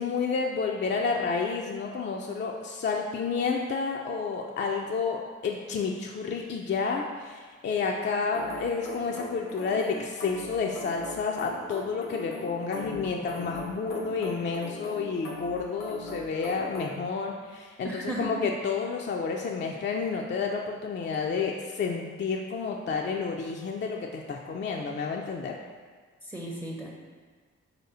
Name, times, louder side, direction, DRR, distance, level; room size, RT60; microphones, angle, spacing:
voice 1, 0.0-25.5, left 5 dB, 40° left, 0 dB, 0.4 m, -30 dB
sound 1, 8.3-17.0, left 1 dB, 80° left, 0.7 m, -40 dB
voice 2, 17.8-18.4 26.2-26.9, right 1 dB, 10° right, -2 dB, 0.6 m, -35 dB
3.2 x 2.7 x 4.1 m, 1.5 s
supercardioid pair, 40°, 30 cm